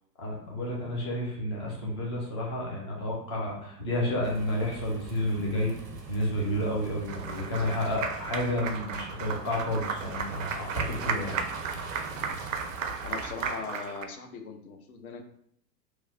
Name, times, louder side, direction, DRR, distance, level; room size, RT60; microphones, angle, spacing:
voice 1, 0.2-5.8 6.1-11.4, left 1 dB, 20° left, -3 dB, 0.3 m, -31 dB
sound 1, 4.2-13.5, right 3 dB, 90° right, 0.7 m, -42 dB
Applause, 7.1-14.1, right 6 dB, 55° right, 0.5 m, -35 dB
voice 2, 13.0-15.2, left 5 dB, 60° left, 5 dB, 0.7 m, -40 dB
3.1 x 2.1 x 3.7 m, 0.69 s
figure-of-eight pair, 105°, 50 cm